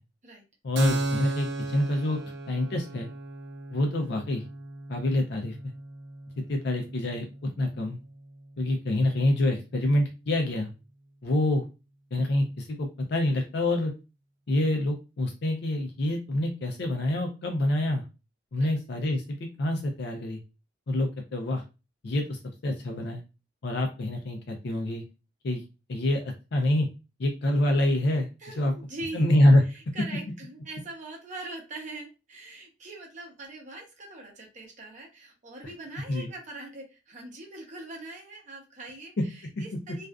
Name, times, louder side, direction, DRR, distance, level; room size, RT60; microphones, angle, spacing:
voice 1, 0.6-2.2 2.5-3.1 3.7-4.5 4.9-5.6 6.5-8.0 8.6-10.7 11.2-11.7 12.1-13.9 14.5-18.0 18.5-20.4 20.9-21.6 22.0-23.2 23.6-25.0 25.4-25.6 25.9-26.9 27.2-28.3 28.6-28.7 29.1-29.6 36.1-36.3, left 1 dB, 60° left, 2 dB, 0.5 m, -26 dB
Keyboard (musical), 0.8-8.1, right 2 dB, 65° right, 0.4 m, -35 dB
voice 2, 28.4-29.3 29.7-40.1, right 2 dB, 40° right, 1 dB, 0.7 m, -42 dB
2.4 x 2.3 x 2.2 m, 0.29 s
head